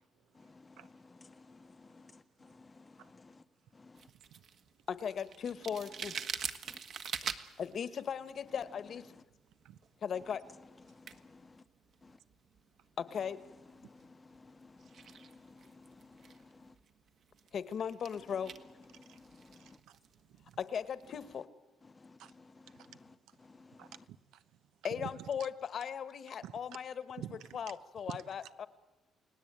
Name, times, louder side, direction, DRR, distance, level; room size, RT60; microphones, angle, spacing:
sound 1, 4.0-21.4, right 7 dB, 55° right, 1.5 m, -47 dB
voice 1, 4.9-6.1 7.6-9.1 10.0-10.4 13.0-13.4 17.5-18.5 20.6-21.5 24.8-27.2 27.5-28.7, left 7 dB, 45° left, 1.3 m, -38 dB
voice 2, 14.6-15.9 16.2-16.3 19.5-19.6 23.6-23.7, left 3 dB, 20° left, 0.9 m, -57 dB
voice 3, 19.6-20.0 20.4-20.6 22.2-22.3 22.9-23.0 23.8-24.4 24.9-25.3 26.4-26.6 27.2-27.6 28.1-28.2, right 11 dB, 90° right, 1.0 m, -47 dB
30.0 x 18.5 x 8.9 m
cardioid pair, 145°, 0 cm